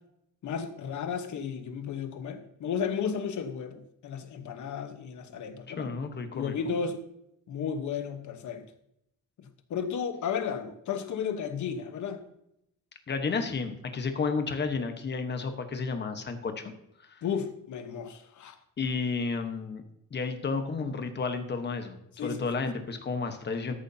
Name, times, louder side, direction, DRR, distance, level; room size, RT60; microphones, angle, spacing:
voice 1, 0.4-5.9 6.3-7.0 7.5-8.7 9.4-12.2 17.2-18.6 22.2-22.5, left 7 dB, 60° left, 1.2 m, -33 dB
voice 2, 5.7-6.7 13.1-16.7 17.0-17.2 18.8-19.8 20.1-23.7, left 4 dB, 30° left, 1.2 m, -32 dB
14.0 x 11.0 x 2.8 m
wide cardioid pair, 175°, 33 cm